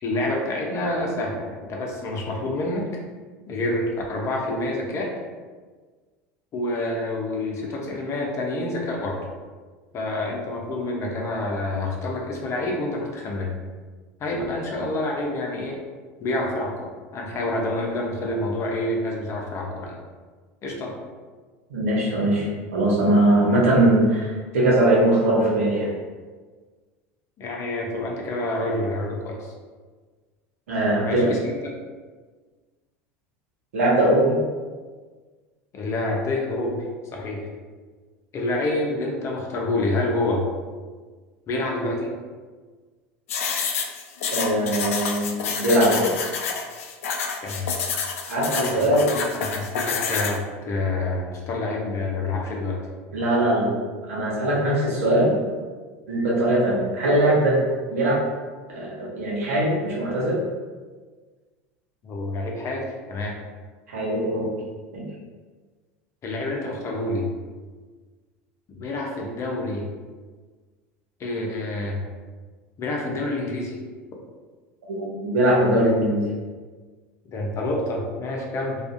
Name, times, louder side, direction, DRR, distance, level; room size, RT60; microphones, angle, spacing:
voice 1, 0.0-2.9 3.5-5.1 6.5-9.2 9.9-13.5 14.2-15.8 16.2-16.9 17.1-19.9 20.6-20.9 27.4-29.5 31.0-31.6 35.7-36.8 37.1-37.5 38.3-40.4 41.5-42.1 47.4-47.7 48.6-48.9 49.1-50.4 50.6-52.8 62.0-63.4 66.2-67.3 68.7-69.8 71.2-72.0 72.8-73.8 77.3-78.8, left 2 dB, 40° left, -1 dB, 0.7 m, -27 dB
voice 2, 21.7-25.9 30.7-31.3 33.7-34.4 44.3-46.1 48.2-49.1 53.1-53.7 54.1-55.4 56.1-57.6 57.9-58.2 58.7-60.4 63.9-64.5 64.9-65.0 74.9-76.2, right 1 dB, 85° right, -4 dB, 0.8 m, -21 dB
sound 1, 43.3-50.4, left 5 dB, 85° left, 0.3 m, -28 dB
2.5 x 2.4 x 2.5 m, 1.4 s
hypercardioid pair, 95°, 7 cm